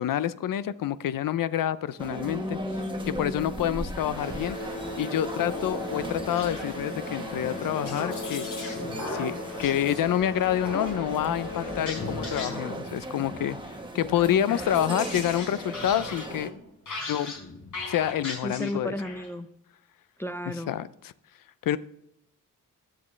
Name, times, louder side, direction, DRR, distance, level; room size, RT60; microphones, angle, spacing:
voice 1, 0.0-2.6 3.1-4.6 5.0-8.5 9.1-16.5 17.1-17.3 17.9-18.9 20.5-21.1 21.7-21.8, left 11 dB, 85° left, 15 dB, 0.6 m, -28 dB
sound 1, 2.0-16.5, right 2 dB, 15° right, 1.2 m, -38 dB
voice 2, 2.2-4.0 14.2-14.6 18.4-19.5 20.2-20.7, left 1 dB, 10° left, 8 dB, 0.5 m, -34 dB
sound 2, 4.0-14.2 15.1-15.2 15.9-16.0 16.6-16.7, left 3 dB, 45° left, 4.1 m, -38 dB
sound 3, 5.3-7.0 7.5-10.0 10.6-11.0 11.6-13.0 13.2-13.8 14.1-19.3, left 3 dB, 65° left, 4.6 m, -39 dB
20.5 x 7.4 x 3.2 m, 0.79 s
wide cardioid pair, 130°, 32 cm